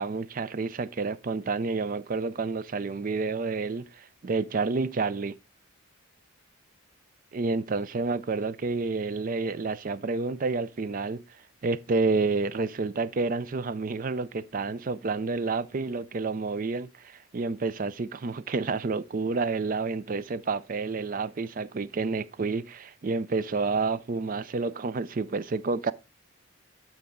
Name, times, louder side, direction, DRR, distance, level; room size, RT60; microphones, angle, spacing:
voice 1, 0.0-5.3 7.3-11.2 11.6-25.9, right 4 dB, 40° right, 0.4 m, -29 dB
12.0 x 4.7 x 3.6 m
head